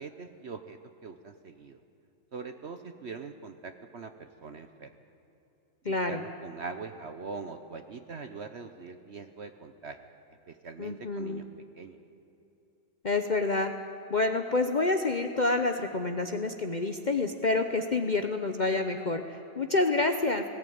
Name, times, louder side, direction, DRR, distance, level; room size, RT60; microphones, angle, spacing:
voice 1, 0.0-1.8 2.3-4.9 5.8-10.0 10.5-11.5 11.7-12.0, right 4 dB, 60° right, 9 dB, 0.7 m, -42 dB
voice 2, 5.8-6.2 10.8-11.4 13.0-13.7 14.1-20.4, left 3 dB, 90° left, 6 dB, 0.4 m, -28 dB
19.0 x 17.0 x 9.4 m, 2.9 s
omnidirectional pair, 2.2 m